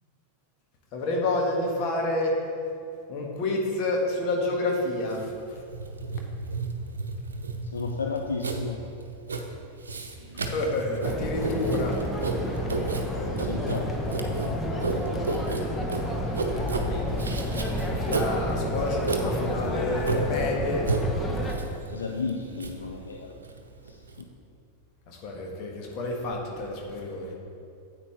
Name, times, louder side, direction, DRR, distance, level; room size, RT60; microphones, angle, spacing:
voice 1, 0.9-2.4 3.1-5.3 10.5-12.0 16.5-20.8 21.5-21.8 25.1-27.3, left 2 dB, 40° left, 0 dB, 1.6 m, -29 dB
Writing, 5.1-24.2, right 3 dB, 70° right, 0.8 m, -33 dB
voice 2, 7.6-8.8 13.1-14.1 14.8-15.4 21.9-23.3 23.8-24.3, left 4 dB, 70° left, 2 dB, 0.6 m, -34 dB
sound 1, 11.0-21.6, equal, 10° left, 1.0 m, -30 dB
9.8 x 8.3 x 3.4 m, 2.6 s
figure-of-eight pair, 90°, 0 cm